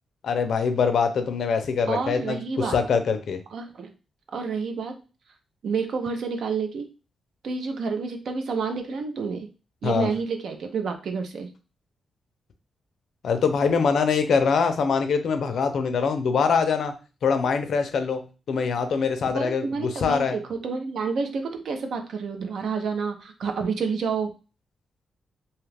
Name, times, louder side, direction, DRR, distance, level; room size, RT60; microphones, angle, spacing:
voice 1, 0.2-2.4 2.7-3.4 9.8-10.1 13.2-16.9 17.2-18.2 18.5-20.4, left 5 dB, 65° left, 8 dB, 0.5 m, -23 dB
voice 2, 1.9-2.8 3.5-3.9 4.3-4.9 5.6-6.9 7.4-9.5 9.8-11.5 19.3-24.3, right 5 dB, 70° right, 5 dB, 0.6 m, -29 dB
2.8 x 2.4 x 3.3 m, 0.33 s
wide cardioid pair, 145°, 0 cm